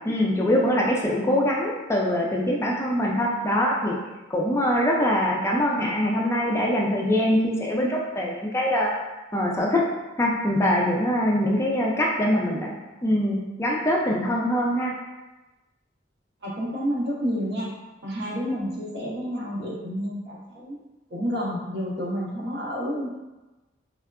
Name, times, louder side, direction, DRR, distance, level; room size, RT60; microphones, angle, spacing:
voice 1, 0.0-4.0 4.3-8.9 9.3-9.8 10.2-12.7 13.0-14.9, left 1 dB, 15° left, -2 dB, 0.3 m, -23 dB
voice 2, 1.1-1.4 16.4-17.7 18.0-20.8 21.1-23.1, equal, 65° right, -5 dB, 0.8 m, -30 dB
3.4 x 2.3 x 2.2 m, 1.1 s
head